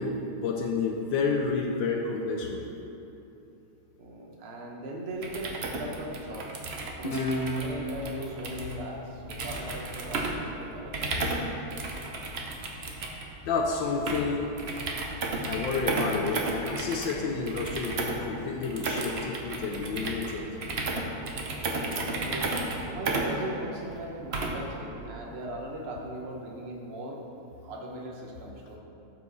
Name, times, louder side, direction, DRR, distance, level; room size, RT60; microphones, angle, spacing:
voice 1, 0.0-2.7 13.5-14.5 15.4-20.5, left 4 dB, 70° left, 2 dB, 1.3 m, -30 dB
voice 2, 4.0-6.5 6.9-11.6 21.8-22.5 22.9-27.2 27.6-28.8, right 1 dB, 40° right, -1 dB, 1.0 m, -39 dB
sound 1, 5.1-24.7, right 2 dB, 60° right, 0.6 m, -34 dB
Guitar, 7.0-10.3, left 1 dB, 50° left, 0.5 m, -34 dB
12.0 x 5.6 x 4.1 m, 2.9 s
omnidirectional pair, 2.3 m